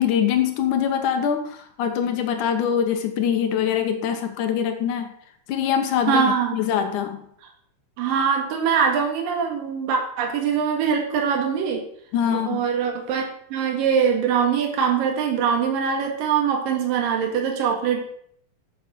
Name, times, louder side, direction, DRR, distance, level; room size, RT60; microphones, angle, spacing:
voice 1, 0.0-5.1 5.5-7.2 12.1-12.6, left 8 dB, 70° left, 6 dB, 2.5 m, -23 dB
voice 2, 6.1-6.6 8.0-11.8 12.3-13.2 13.5-18.0, right 7 dB, 75° right, 2 dB, 3.3 m, -22 dB
8.5 x 8.3 x 6.2 m, 0.65 s
omnidirectional pair, 4.0 m